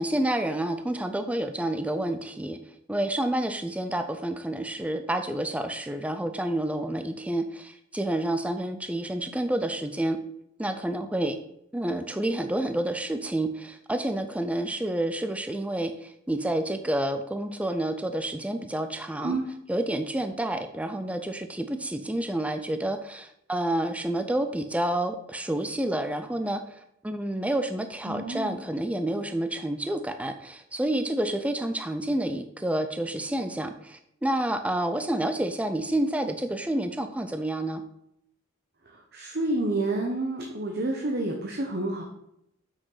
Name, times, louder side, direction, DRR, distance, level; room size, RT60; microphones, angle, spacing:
voice 1, 0.0-2.6 2.9-10.2 10.6-11.4 11.7-19.4 19.7-37.8, right 1 dB, 5° right, 8 dB, 0.4 m, -29 dB
voice 2, 28.1-28.6 38.9-42.0, right 2 dB, 50° right, 1 dB, 1.0 m, -29 dB
7.8 x 6.2 x 4.0 m, 0.78 s
head